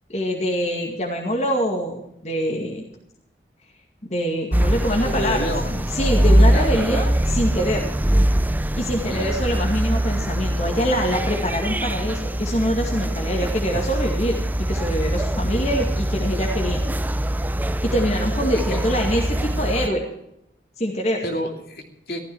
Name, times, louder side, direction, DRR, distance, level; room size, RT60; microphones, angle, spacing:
voice 1, 0.1-2.8 4.0-7.8 8.8-17.1 17.8-20.0 20.8-21.2, equal, 40° left, -1 dB, 2.2 m, -24 dB
sound 1, 4.5-19.9, right 1 dB, 10° right, 0.5 m, -22 dB
voice 2, 5.0-5.7 6.5-6.8 9.1-9.3 18.5-18.8 21.2-22.2, equal, 55° left, 2 dB, 2.8 m, -29 dB
15.5 x 13.5 x 4.7 m, 0.79 s
head